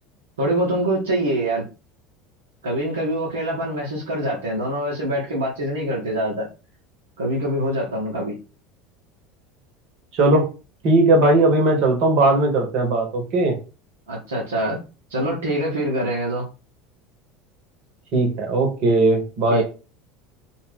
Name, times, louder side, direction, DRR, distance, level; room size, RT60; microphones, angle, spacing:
voice 1, 0.4-1.6 2.6-6.5 7.2-8.3 14.1-14.8 15.1-16.5 19.5-19.6, right 1 dB, 70° right, 0.7 m, -24 dB
voice 2, 10.1-10.5 10.8-13.5 18.1-19.6, right 2 dB, 50° right, 0.9 m, -18 dB
2.4 x 2.2 x 3.3 m
figure-of-eight pair, 70°, 0 cm